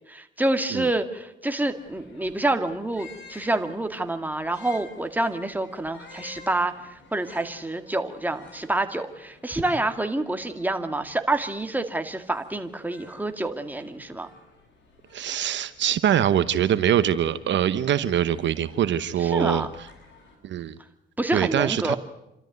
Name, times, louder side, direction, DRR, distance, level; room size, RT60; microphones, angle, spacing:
voice 1, 0.1-14.3 19.2-19.7 21.2-22.0, right 2 dB, 10° right, 6 dB, 2.0 m, -27 dB
sound 1, 1.7-20.3, left 3 dB, 65° left, 7.5 m, -51 dB
voice 2, 15.1-19.7 20.4-20.8 21.3-22.0, right 10 dB, 65° right, 13 dB, 0.9 m, -23 dB
28.0 x 13.0 x 9.3 m, 0.89 s
cardioid pair, 90°, 20 cm